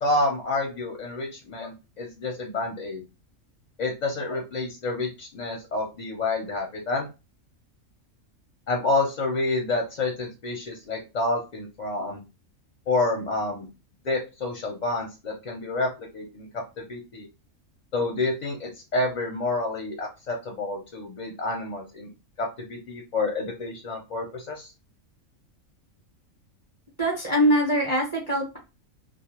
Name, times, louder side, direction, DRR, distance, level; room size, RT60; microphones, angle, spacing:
voice 1, 0.0-3.0 3.8-7.1 8.7-12.2 12.9-13.7 14.0-16.5 16.8-17.3 17.9-22.1 22.4-24.7, left 2 dB, 50° left, 1 dB, 0.5 m, -28 dB
voice 2, 27.0-28.6, equal, 20° right, -1 dB, 0.5 m, -23 dB
2.3 x 2.0 x 2.9 m, 0.27 s
omnidirectional pair, 1.3 m